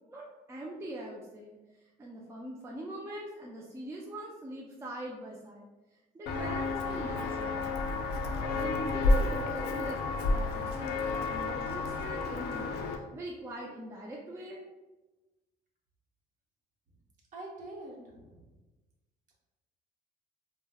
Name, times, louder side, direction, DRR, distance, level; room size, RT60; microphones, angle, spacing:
voice 1, 0.1-1.6 2.0-5.7 6.1-7.7 8.5-14.6, right 1 dB, 15° right, -2 dB, 0.3 m, -42 dB
Walk footsteps, 6.3-13.0, left 3 dB, 75° left, 0.4 m, -31 dB
voice 2, 17.3-18.4, right 2 dB, 50° right, -2 dB, 0.9 m, -45 dB
3.3 x 2.0 x 2.2 m, 1.1 s
cardioid pair, 110°, 17 cm